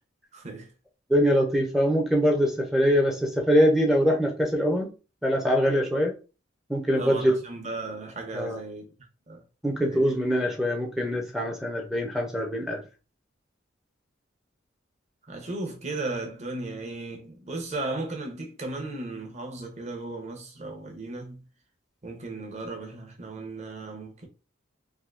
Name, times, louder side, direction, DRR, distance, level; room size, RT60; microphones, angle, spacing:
voice 1, 0.3-0.7 7.0-8.9 9.3-9.4 9.8-10.1 15.3-21.4 22.0-24.3, right 2 dB, 35° right, 0.7 m, -36 dB
voice 2, 1.1-4.9 5.2-6.2 6.7-7.4 8.3-8.6 9.6-12.8, equal, ahead, 0.4 m, -23 dB
3.5 x 2.6 x 2.4 m
head